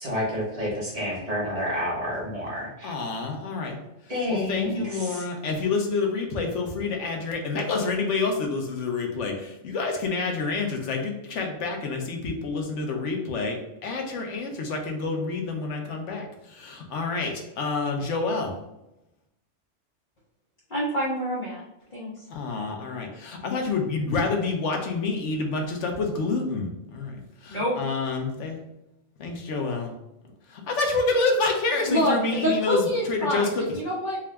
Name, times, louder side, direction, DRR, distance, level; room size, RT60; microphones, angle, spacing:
voice 1, 0.0-2.9 4.1-5.2, left 1 dB, 30° right, -6 dB, 1.3 m, -29 dB
voice 2, 2.8-3.8 4.3-18.5 22.3-28.6 29.2-29.9 30.5-33.6, left 3 dB, 80° left, 2 dB, 1.1 m, -28 dB
voice 3, 20.7-21.6 21.9-22.1 27.5-27.7 31.9-34.2, equal, 45° left, -7 dB, 0.9 m, -26 dB
3.8 x 2.3 x 3.3 m, 0.89 s
omnidirectional pair, 1.2 m